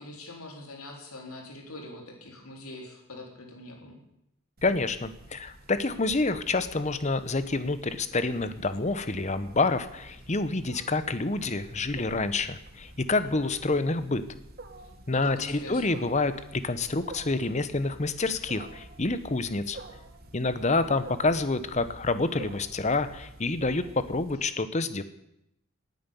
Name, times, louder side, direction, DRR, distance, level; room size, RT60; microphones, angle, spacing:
voice 1, 0.0-4.0 15.1-16.0, left 1 dB, 85° left, 1 dB, 3.6 m, -43 dB
voice 2, 4.6-14.2 15.1-19.8 20.3-25.0, left 3 dB, 30° left, 12 dB, 0.9 m, -28 dB
Wild animals, 4.6-24.4, right 2 dB, 45° right, 1.5 m, -48 dB
18.0 x 9.4 x 7.0 m, 0.83 s
head